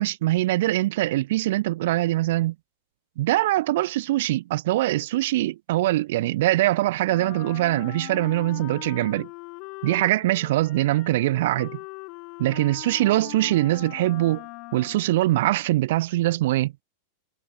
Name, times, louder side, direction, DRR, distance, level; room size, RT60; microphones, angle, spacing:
voice 1, 0.0-2.5 3.2-9.3 9.8-11.8 12.4-14.4 14.7-16.7, right 16 dB, 55° right, 0.4 m, -23 dB
Wind instrument woodwind instrument, 7.1-15.2, left 30 dB, 45° left, 0.9 m, -41 dB
figure-of-eight pair, 90°, 0 cm